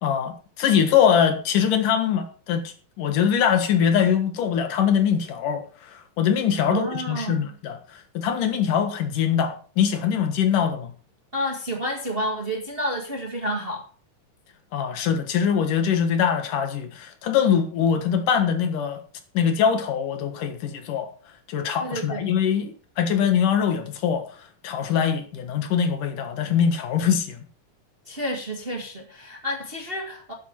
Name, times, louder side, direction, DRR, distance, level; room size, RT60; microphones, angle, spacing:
voice 1, 0.0-10.9 14.7-19.0 19.3-21.1 21.5-24.2 24.6-27.5, left 8 dB, 80° left, 3.1 m, -23 dB
voice 2, 6.6-7.4 11.3-13.8 21.8-22.3 28.1-30.3, equal, 25° right, 1.4 m, -30 dB
12.0 x 9.5 x 4.6 m
omnidirectional pair, 3.7 m